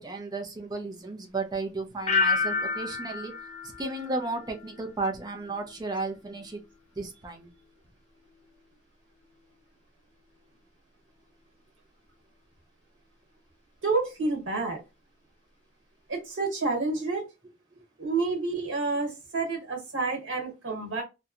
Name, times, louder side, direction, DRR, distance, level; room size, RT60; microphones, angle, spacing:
voice 1, 0.0-3.3 3.8-6.6 7.0-7.5, right 3 dB, 20° right, 4 dB, 0.5 m, -34 dB
sound 1, 2.1-4.9 5.2-5.7, left 4 dB, 35° left, 0.5 m, -30 dB
voice 2, 13.8-14.8 16.1-17.2 18.0-21.0, right 3 dB, 65° right, 1 dB, 1.2 m, -29 dB
2.7 x 2.2 x 2.4 m, 0.26 s
head